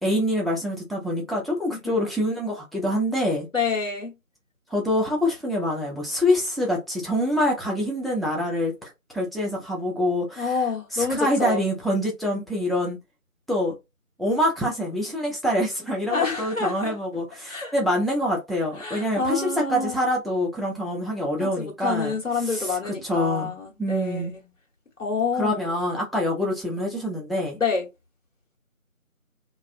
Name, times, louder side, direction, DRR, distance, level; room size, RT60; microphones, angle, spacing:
voice 1, 0.0-3.5 4.7-10.5 10.9-13.0 13.5-13.7 14.2-22.1 22.5-23.5 23.8-24.3 25.4-27.6, left 1 dB, ahead, 0.6 m, -25 dB
voice 2, 3.5-4.2 10.4-11.6 16.1-17.0 17.5-17.7 18.8-20.0 21.4-24.4 25.0-25.6 27.6-27.9, left 4 dB, 60° left, 1.4 m, -27 dB
2.4 x 2.3 x 2.6 m
figure-of-eight pair, 175°, 42 cm